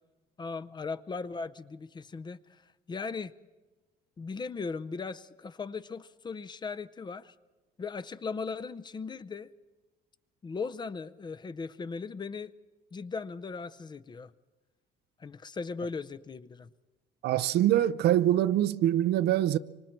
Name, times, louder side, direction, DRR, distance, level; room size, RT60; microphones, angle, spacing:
voice 1, 0.4-2.6 2.9-3.3 4.2-7.3 7.8-9.5 10.4-12.5 12.9-14.3 15.2-16.7, left 4 dB, 25° left, 0.6 m, -38 dB
voice 2, 17.2-19.6, right 12 dB, 75° right, 0.7 m, -24 dB
25.5 x 25.0 x 4.5 m
cardioid pair, 110°, 17 cm